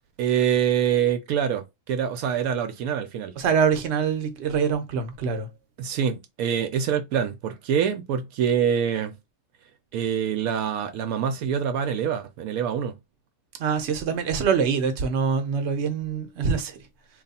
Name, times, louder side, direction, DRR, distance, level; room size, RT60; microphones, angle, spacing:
voice 1, 0.2-3.4 5.8-9.2 9.9-13.0, right 8 dB, 80° right, 1.0 m, -25 dB
voice 2, 3.4-5.5 13.6-16.8, right 6 dB, 55° right, 1.0 m, -24 dB
3.1 x 2.3 x 4.1 m
omnidirectional pair, 1.5 m